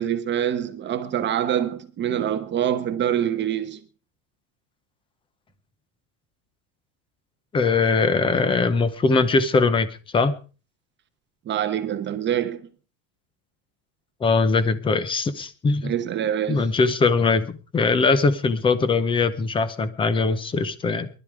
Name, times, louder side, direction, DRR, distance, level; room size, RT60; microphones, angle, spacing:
voice 1, 0.0-3.8 11.5-12.7 15.8-16.7, right 10 dB, 25° right, 1.0 m, -25 dB
voice 2, 7.5-10.3 14.2-15.9 16.5-21.1, left 4 dB, 10° left, 0.7 m, -21 dB
19.5 x 12.0 x 4.8 m
cardioid pair, 175°, 48 cm